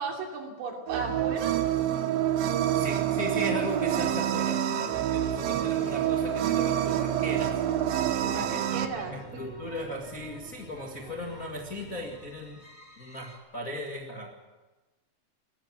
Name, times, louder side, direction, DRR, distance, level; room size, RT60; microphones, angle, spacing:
voice 1, 0.0-1.5 8.2-9.4, right 4 dB, 90° right, 1 dB, 5.5 m, -36 dB
sound 1, 0.9-8.9, right 11 dB, 75° right, 2.4 m, -27 dB
voice 2, 2.7-7.6 8.3-12.6 13.0-14.3, equal, 65° left, 0 dB, 0.8 m, -37 dB
sound 2, 4.2-13.4, left 1 dB, 35° left, 1.0 m, -48 dB
20.0 x 14.5 x 9.0 m, 1.2 s
omnidirectional pair, 5.3 m